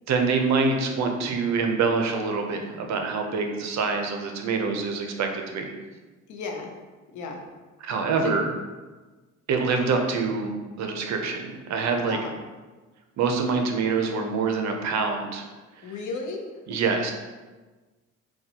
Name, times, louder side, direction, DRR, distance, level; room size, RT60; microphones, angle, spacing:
voice 1, 0.1-5.7 7.8-8.5 9.5-12.2 13.2-15.4 16.7-17.1, right 4 dB, 65° right, 3 dB, 0.6 m, -25 dB
voice 2, 6.3-6.7 7.1-7.4 8.2-8.3 12.1-12.3 15.8-16.5, left 4 dB, 75° left, 2 dB, 0.6 m, -34 dB
4.1 x 2.2 x 2.7 m, 1.3 s
cardioid pair, 90°, 30 cm